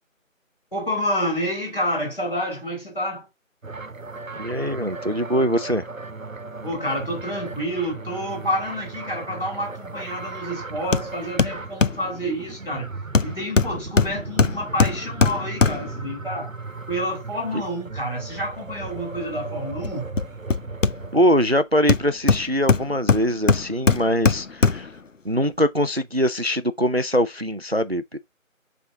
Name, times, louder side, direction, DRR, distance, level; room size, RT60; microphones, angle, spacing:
voice 1, 0.7-3.2 6.6-12.9 13.2-16.5 16.9-20.1, equal, 40° left, 4.5 m, -28 dB
sound 1, 3.6-21.2, right 3 dB, 75° right, 1.1 m, -37 dB
voice 2, 4.4-5.9 17.5-17.6 21.1-24.9 25.2-28.2, equal, 50° right, 0.4 m, -22 dB
Hammer, 10.9-11.1 11.4-12.1 13.1-16.0 19.8-21.3 21.9-25.0 25.4-25.5, left 4 dB, 65° left, 0.6 m, -21 dB
7.0 x 3.5 x 4.7 m
figure-of-eight pair, 175°, 41 cm